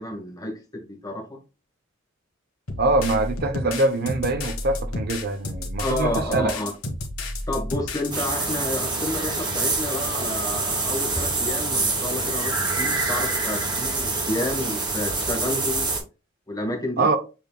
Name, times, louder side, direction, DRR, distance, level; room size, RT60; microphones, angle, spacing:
voice 1, 0.0-1.4 5.8-6.7 7.5-15.9 16.5-17.1, left 1 dB, 15° left, 1.2 m, -30 dB
sound 1, 2.7-8.1, left 1 dB, 80° left, 1.2 m, -31 dB
voice 2, 2.8-6.5 17.0-17.2, right 2 dB, 45° right, 0.6 m, -23 dB
sound 2, 8.1-16.0, right 3 dB, 20° right, 1.4 m, -26 dB
7.0 x 3.3 x 2.2 m
head